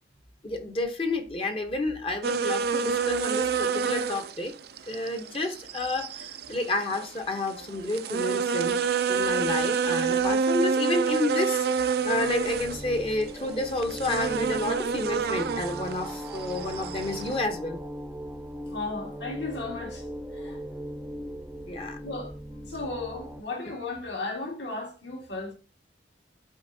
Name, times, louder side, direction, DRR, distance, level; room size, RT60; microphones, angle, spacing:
voice 1, 0.4-4.5 4.9-17.8 20.5-20.6 21.7-22.0, left 2 dB, 30° left, 0.8 m, -30 dB
sound 1, 2.2-17.5, right 5 dB, 55° right, 0.4 m, -28 dB
sound 2, 11.9-23.4, equal, 5° right, 0.6 m, -39 dB
voice 2, 18.7-20.6 22.0-22.3 22.6-25.5, left 3 dB, 70° left, 2.2 m, -35 dB
12.0 x 4.5 x 2.7 m
head